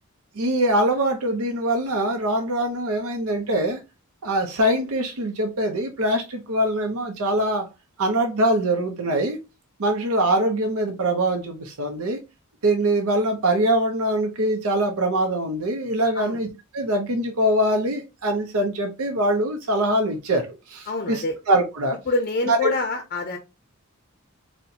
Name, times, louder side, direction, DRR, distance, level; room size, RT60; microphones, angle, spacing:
voice 1, 0.4-3.8 4.2-7.7 8.0-9.4 9.8-12.2 12.6-16.5 16.7-22.0 22.5-22.7, right 1 dB, 80° right, 0.6 m, -23 dB
voice 2, 20.9-21.4 22.1-23.4, left 3 dB, 40° left, 0.5 m, -26 dB
4.1 x 2.1 x 2.7 m
head